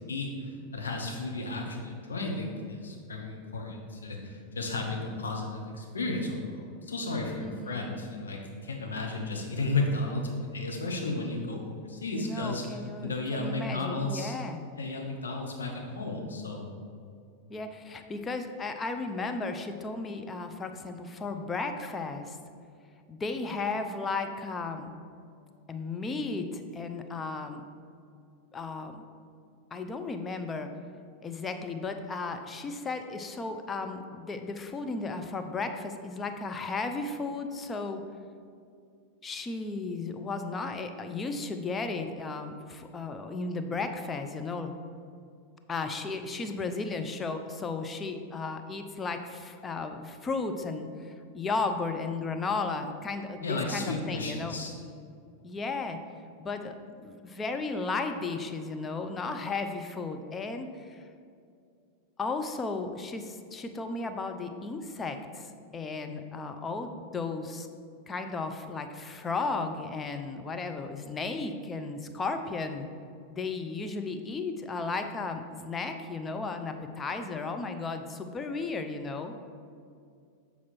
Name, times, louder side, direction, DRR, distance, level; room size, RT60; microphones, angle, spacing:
voice 1, 0.1-14.3 14.7-16.7 53.4-54.7, left 2 dB, 70° left, 1 dB, 1.1 m, -33 dB
voice 2, 7.4-7.9 12.1-14.6 17.5-22.4 23.1-24.9 25.7-27.6 28.5-29.0 29.7-30.7 31.2-38.0 39.2-44.7 45.7-54.6 55.4-56.0 56.4-61.0 62.2-67.7 68.1-72.9 73.3-79.3, left 3 dB, 20° left, 7 dB, 0.5 m, -34 dB
7.3 x 4.2 x 4.4 m, 2.4 s
figure-of-eight pair, 90°, 0 cm